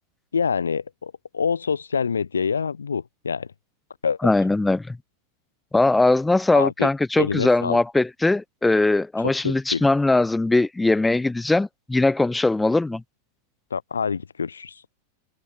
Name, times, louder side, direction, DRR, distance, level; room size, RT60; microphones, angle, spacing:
voice 1, 0.3-3.5 4.0-4.3 6.5-6.9 7.2-7.8 9.2-9.8 13.7-14.8, left 6 dB, 70° left, 2.8 m, -26 dB
voice 2, 4.2-5.0 5.7-13.0, left 2 dB, 5° left, 1.8 m, -20 dB
figure-of-eight pair, 90°, 0 cm